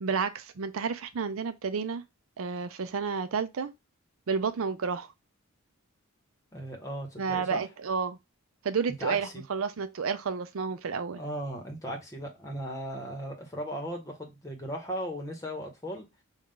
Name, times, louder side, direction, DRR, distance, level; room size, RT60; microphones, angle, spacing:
voice 1, 0.0-2.0 2.4-3.7 4.3-5.1 7.2-8.2 8.6-11.2, right 5 dB, 70° right, 0.5 m, -31 dB
voice 2, 6.5-7.6 9.0-9.4 11.1-16.0, equal, 15° left, 1.0 m, -37 dB
5.4 x 2.4 x 3.7 m
head